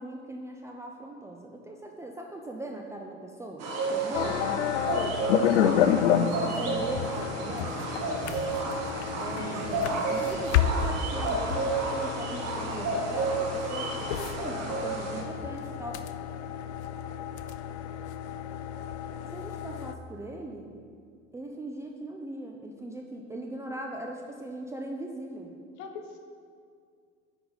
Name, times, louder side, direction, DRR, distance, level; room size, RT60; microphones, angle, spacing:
voice 1, 0.0-7.8 9.2-16.0 19.3-20.8 21.3-25.5, right 1 dB, 10° right, 0 dB, 0.4 m, -39 dB
sound 1, 3.6-15.2, right 3 dB, 45° right, 1.4 m, -31 dB
braille embossing job with braille embosser, 4.1-20.0, left 9 dB, 65° left, 0.5 m, -30 dB
voice 2, 9.4-9.9 25.8-26.2, left 5 dB, 50° left, 4 dB, 1.0 m, -41 dB
10.0 x 4.1 x 5.0 m, 2.2 s
figure-of-eight pair, 75°, 37 cm